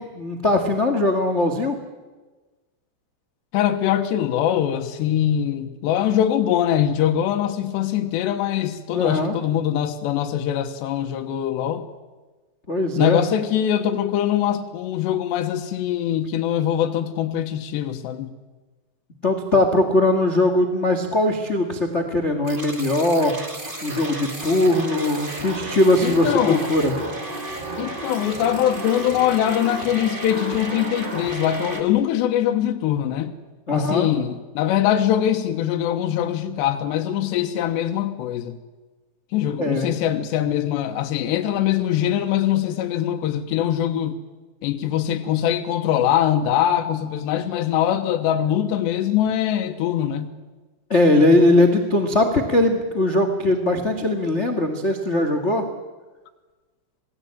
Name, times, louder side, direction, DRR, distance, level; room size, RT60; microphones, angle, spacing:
voice 1, 0.0-1.8 8.9-9.4 12.7-13.2 19.2-23.3 23.8-26.9 33.7-34.1 39.6-39.9 50.9-55.6, left 1 dB, 55° left, 6 dB, 0.7 m, -20 dB
voice 2, 3.5-11.8 13.0-18.3 26.0-26.6 27.8-33.3 33.7-38.6 39.3-44.2 44.6-50.3, left 10 dB, 85° left, 5 dB, 3.4 m, -22 dB
sound 1, 22.5-31.8, right 2 dB, 20° right, 1.5 m, -32 dB
27.0 x 19.5 x 8.8 m, 1.3 s
omnidirectional pair, 4.9 m